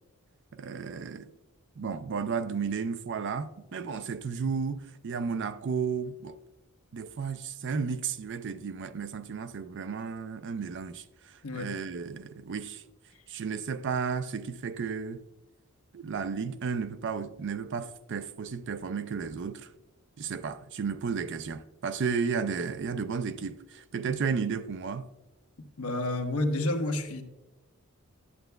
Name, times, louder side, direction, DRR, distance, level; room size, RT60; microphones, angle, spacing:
voice 1, 0.5-1.3 1.8-6.4 6.9-12.8 13.3-15.2 15.9-19.7 20.2-25.1, right 5 dB, 55° right, 0.4 m, -33 dB
voice 2, 25.8-27.2, left 2 dB, 70° left, 1.0 m, -29 dB
11.0 x 7.7 x 2.3 m
head